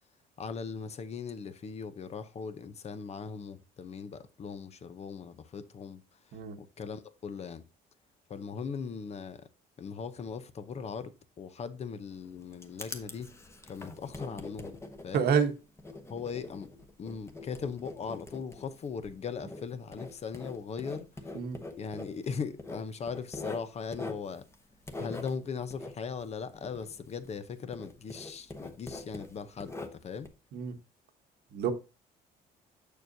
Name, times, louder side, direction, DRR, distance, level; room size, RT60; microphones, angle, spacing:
voice 1, 0.4-6.0 6.6-7.6 8.3-9.4 9.8-11.1 11.4-13.3 13.7-14.8 15.0-15.3 16.1-16.7 17.0-21.1 21.8-24.4 25.0-30.3, left 6 dB, 40° left, 0.7 m, -39 dB
Writing, 12.1-27.5 27.7-30.3, left 2 dB, 15° left, 1.0 m, -44 dB
voice 2, 15.1-15.5 21.3-21.6 30.5-30.7 31.5-31.7, right 6 dB, 65° right, 1.1 m, -27 dB
6.8 x 6.4 x 2.6 m
cardioid pair, 110°, 17 cm